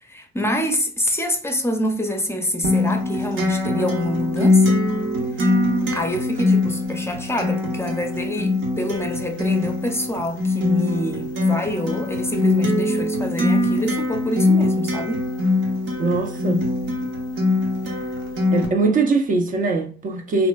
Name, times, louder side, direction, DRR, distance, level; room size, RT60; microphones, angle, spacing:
voice 1, 0.0-4.8 5.9-15.2, left 1 dB, 10° left, 0.5 m, -26 dB
Acoustic guitar, 2.6-18.7, left 2 dB, 75° right, 0.8 m, -22 dB
voice 2, 16.0-16.7 18.5-20.5, right 3 dB, 45° right, 0.5 m, -21 dB
2.9 x 2.5 x 2.2 m
cardioid pair, 90°, 20 cm